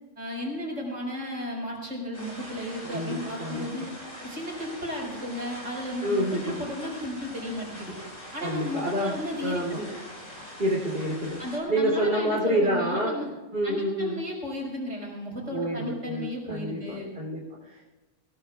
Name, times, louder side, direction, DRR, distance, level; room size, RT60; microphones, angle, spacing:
voice 1, 0.2-3.9 4.2-7.9 8.3-9.9 11.4-13.3 13.6-17.1, left 1 dB, 75° right, -1 dB, 5.4 m, -34 dB
sound 1, 2.1-11.6, left 1 dB, 85° left, 7.4 m, -43 dB
voice 2, 2.8-3.7 6.0-6.6 8.4-9.1 9.4-9.9 10.6-11.4 11.7-13.1 13.5-14.2 15.5-17.8, right 1 dB, 45° right, -5 dB, 3.6 m, -28 dB
25.5 x 17.0 x 2.4 m, 1.2 s
omnidirectional pair, 1.3 m